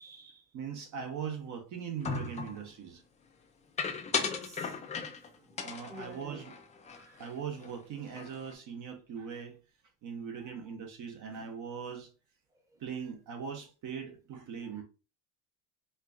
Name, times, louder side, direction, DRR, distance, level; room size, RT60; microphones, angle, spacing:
voice 1, 0.0-0.4 4.2-4.8 5.5-6.4 6.8-7.3 10.4-10.5 12.7-12.8 14.7-14.8, equal, 5° right, 0.8 m, -49 dB
voice 2, 0.5-3.0 5.6-6.5 7.2-9.6 10.0-12.1 12.8-14.8, right 7 dB, 45° right, 0.9 m, -40 dB
sound 1, 2.0-2.6 3.8-5.3 5.6-7.3 7.6-7.8 8.1-8.5, left 5 dB, 20° left, 0.4 m, -36 dB
4.4 x 2.4 x 2.4 m
supercardioid pair, 115°, 42 cm